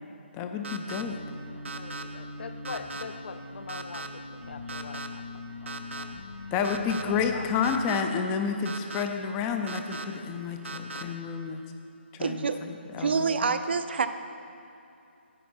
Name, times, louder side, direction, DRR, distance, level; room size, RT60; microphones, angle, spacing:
voice 1, 0.3-1.2 6.5-11.6 12.1-13.5, left 6 dB, 15° left, 5 dB, 0.4 m, -30 dB
sound 1, 0.6-1.0 1.7-2.0 2.7-3.0 3.7-4.1 4.7-5.1 5.7-6.0 6.6-7.0 7.6-8.0 8.7-9.0 9.7-10.1 10.7-11.0, right 3 dB, 80° right, 0.8 m, -37 dB
sound 2, 1.0-7.8, left 2 dB, 90° left, 1.4 m, -42 dB
voice 2, 1.5-6.1 7.0-7.5, left 5 dB, 60° left, 9 dB, 0.6 m, -43 dB
voice 3, 12.2-12.6 13.0-14.1, right 5 dB, 60° right, 10 dB, 0.5 m, -26 dB
10.0 x 8.3 x 4.3 m, 2.7 s
hypercardioid pair, 165°, 6 cm